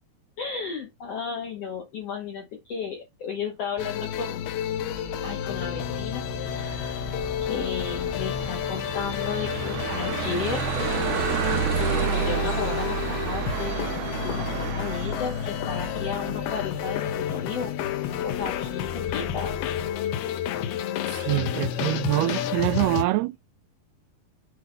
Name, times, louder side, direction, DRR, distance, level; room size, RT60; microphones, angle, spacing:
voice 1, 0.4-4.6 5.2-7.1 7.4-10.7 11.9-14.0 14.2-19.6 21.5-22.4, left 6 dB, 70° left, 1.5 m, -34 dB
sound 1, 3.8-23.0, left 10 dB, 90° left, 2.9 m, -30 dB
sound 2, 4.7-16.9, right 9 dB, 75° right, 1.9 m, -31 dB
sound 3, 5.5-19.9, left 2 dB, 40° left, 1.4 m, -41 dB
voice 2, 11.7-12.1 21.1-23.4, right 18 dB, 90° right, 2.6 m, -26 dB
8.4 x 3.3 x 3.8 m
omnidirectional pair, 4.5 m